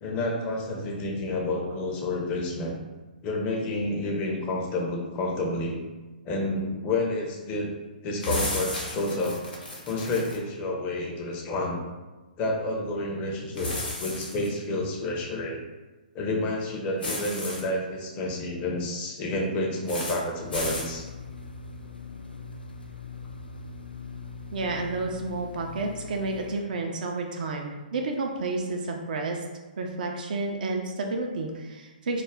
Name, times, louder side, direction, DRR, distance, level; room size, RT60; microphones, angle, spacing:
voice 1, 0.0-2.7 3.2-5.8 6.3-7.7 8.0-9.4 9.8-11.8 12.4-13.7 14.0-15.6 16.1-21.0, left 2 dB, 25° left, -1 dB, 0.5 m, -29 dB
sound 1, 8.2-10.4 13.6-14.5 17.0-17.6 19.9-20.2 20.5-20.9, left 2 dB, 70° left, 0.8 m, -33 dB
sound 2, 20.4-26.6, left 4 dB, 90° left, 0.3 m, -41 dB
voice 2, 24.5-29.4 29.8-32.2, right 3 dB, 60° right, 2 dB, 0.4 m, -30 dB
2.3 x 2.1 x 3.3 m, 1.2 s
figure-of-eight pair, 125°, 5 cm